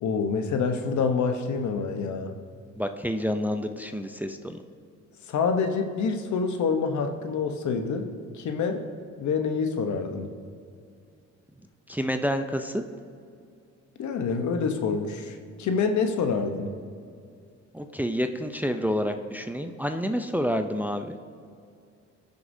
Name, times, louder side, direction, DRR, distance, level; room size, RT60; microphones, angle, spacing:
voice 1, 0.0-2.3 5.3-8.1 8.3-8.9 9.2-10.3 14.0-16.7, left 5 dB, 70° left, 6 dB, 1.0 m, -27 dB
voice 2, 2.8-4.6 11.9-12.8 17.7-21.2, equal, 5° right, 6 dB, 0.5 m, -28 dB
17.5 x 6.6 x 2.7 m, 2.3 s
cardioid pair, 90°, 30 cm